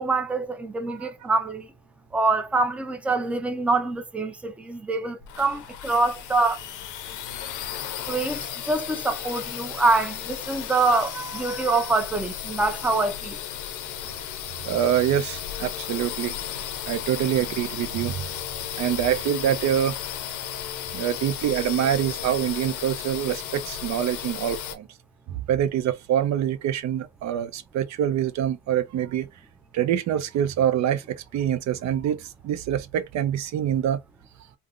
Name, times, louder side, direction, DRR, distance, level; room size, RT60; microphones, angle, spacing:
voice 1, 0.0-1.7 2.1-6.6 8.1-13.4, right 3 dB, 5° right, 0.4 m, -25 dB
sound 1, 5.2-24.8, left 10 dB, 80° left, 0.5 m, -34 dB
voice 2, 14.6-16.3 16.9-18.3 18.7-20.0 20.9-24.9 25.3-29.3 29.7-34.0, right 10 dB, 65° right, 0.4 m, -25 dB
3.4 x 2.0 x 2.4 m
cardioid pair, 90°, 30 cm